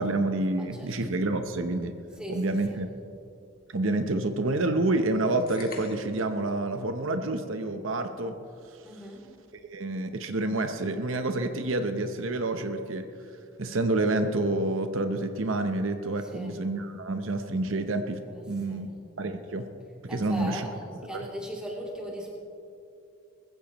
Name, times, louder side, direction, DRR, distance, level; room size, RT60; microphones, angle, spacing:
voice 1, 0.0-1.9 2.3-2.9 3.7-8.3 9.7-13.1 13.6-18.2 18.5-18.9 19.2-19.6 20.0-20.7 21.0-21.3, right 2 dB, 80° right, 7 dB, 0.8 m, -28 dB
voice 2, 0.5-0.9 2.2-2.8 8.8-9.3 16.2-16.6 18.3-18.4 18.7-18.9 20.1-22.3, equal, 5° right, -4 dB, 2.8 m, -39 dB
sound 1, 5.5-6.3, left 5 dB, 45° left, 1.7 m, -45 dB
20.5 x 15.5 x 3.0 m, 2.6 s
head